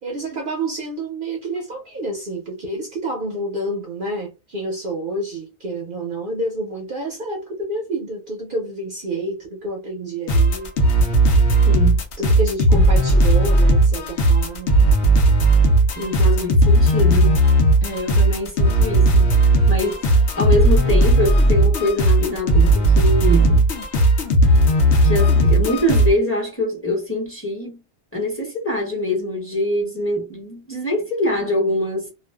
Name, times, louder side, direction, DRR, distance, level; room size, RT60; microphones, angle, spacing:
voice 1, 0.0-10.7 12.2-14.7, right 2 dB, 55° right, 0.7 m, -28 dB
sound 1, 10.3-26.1, right 1 dB, 75° left, 1.0 m, -16 dB
voice 2, 11.7-12.0 12.7-12.9 16.0-17.4 17.8-19.3 19.7-23.7 25.0-27.8 28.1-32.1, left 1 dB, 10° left, 1.0 m, -24 dB
2.5 x 2.3 x 2.2 m
omnidirectional pair, 1.2 m